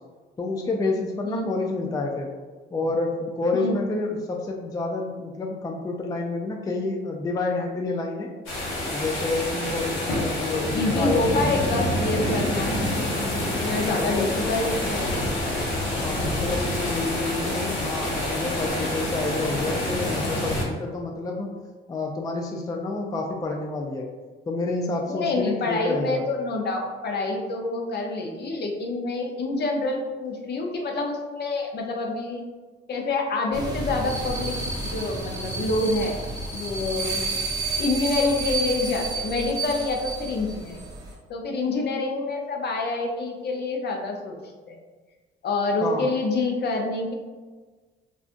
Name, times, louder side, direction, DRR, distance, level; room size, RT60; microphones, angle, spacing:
voice 1, 0.4-2.3 2.7-8.3 8.9-11.5 13.8-14.3 16.0-21.5 21.9-24.1 24.5-26.2 45.8-46.1, left 3 dB, 20° left, 1 dB, 0.3 m, -29 dB
voice 2, 1.2-1.7 3.5-3.7 10.5-12.8 13.6-15.1 25.1-32.4 32.9-36.2 36.5-37.3 37.8-40.8 41.3-44.4 44.7-44.8 45.4-47.1, left 2 dB, 55° left, 1 dB, 0.6 m, -27 dB
sound 1, 8.5-20.6, left 1 dB, 85° left, 0.9 m, -27 dB
sound 2, 33.5-41.1, right 3 dB, 20° right, 0.8 m, -31 dB
3.6 x 2.4 x 2.5 m, 1.4 s
cardioid pair, 90°, 20 cm